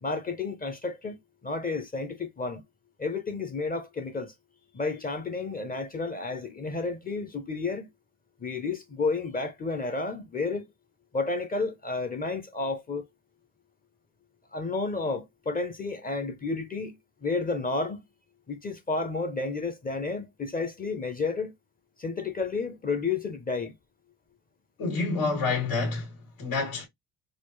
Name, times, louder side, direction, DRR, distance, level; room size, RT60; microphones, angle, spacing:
voice 1, 0.0-2.6 3.0-4.3 4.7-7.9 8.4-10.7 11.1-13.1 14.5-18.0 18.5-21.5 22.0-23.7, left 3 dB, 25° left, 0.7 m, -31 dB
voice 2, 24.8-26.8, left 4 dB, 75° left, 2.4 m, -28 dB
4.2 x 2.4 x 3.1 m
cardioid pair, 120°, 37 cm